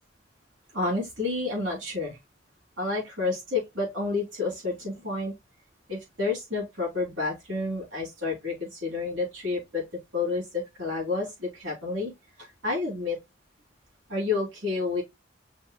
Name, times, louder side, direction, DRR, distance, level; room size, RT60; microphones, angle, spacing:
voice 1, 0.7-2.2 2.8-5.3 5.9-9.8 10.1-12.1 12.4-13.2 14.1-15.0, left 3 dB, 90° right, 3.3 m, -30 dB
6.0 x 3.4 x 2.3 m
head